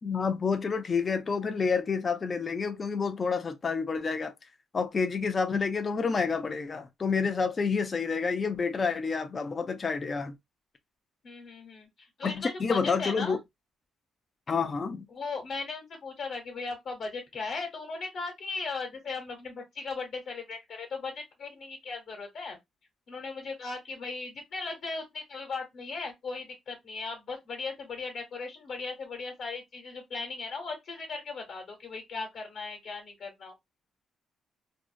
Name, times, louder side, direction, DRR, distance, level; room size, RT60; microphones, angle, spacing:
voice 1, 0.0-4.3 4.7-10.3 12.2-13.4 14.5-15.0, left 5 dB, 35° left, 0.3 m, -29 dB
voice 2, 11.2-13.4 15.1-22.6 23.1-33.5, left 4 dB, 65° left, 1.0 m, -37 dB
2.5 x 2.0 x 2.4 m
cardioid pair, 90°, 0 cm